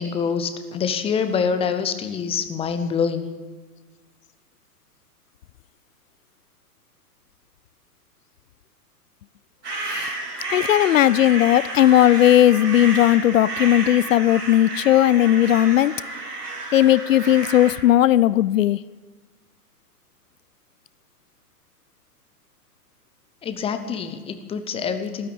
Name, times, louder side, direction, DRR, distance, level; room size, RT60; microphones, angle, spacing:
voice 1, 0.0-3.3 23.4-25.3, left 6 dB, 10° left, 0.7 m, -25 dB
sound 1, 9.6-17.7, right 2 dB, 80° right, 3.6 m, -31 dB
voice 2, 10.5-15.9 16.7-18.8, left 12 dB, 55° left, 0.5 m, -17 dB
13.5 x 12.5 x 8.5 m
figure-of-eight pair, 115°, 47 cm